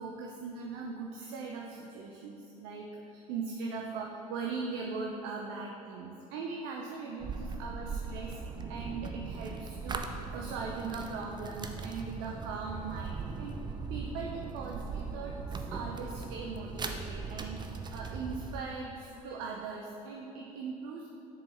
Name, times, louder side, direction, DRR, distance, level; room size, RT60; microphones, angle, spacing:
voice 1, 0.0-8.4 8.7-13.6 13.9-17.6 17.9-21.1, right 4 dB, 65° right, 0 dB, 0.6 m, -40 dB
sound 1, 7.2-18.6, right 4 dB, 25° right, 0.5 m, -39 dB
7.4 x 4.7 x 3.1 m, 3.0 s
hypercardioid pair, 65°, 20 cm